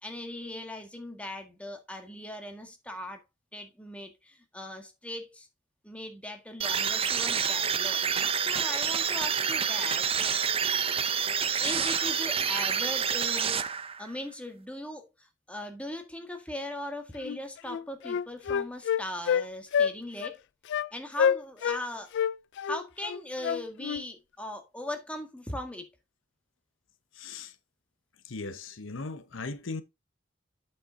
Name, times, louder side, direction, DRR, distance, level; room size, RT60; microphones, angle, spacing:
voice 1, 0.0-3.2 3.5-5.5 5.8-10.4 11.6-20.4 20.9-22.1 22.7-25.9, left 1 dB, 5° left, 1.6 m, -39 dB
sound 1, 6.6-14.1, right 7 dB, 30° right, 0.6 m, -28 dB
Wind instrument woodwind instrument, 17.2-17.4 17.7-19.4 19.7-19.9 20.2-20.3 20.7-20.9 21.2-21.8 22.1-24.0, left 7 dB, 65° left, 0.3 m, -27 dB
voice 2, 27.1-27.5 28.2-29.8, left 3 dB, 80° left, 0.9 m, -38 dB
8.6 x 5.3 x 3.7 m
head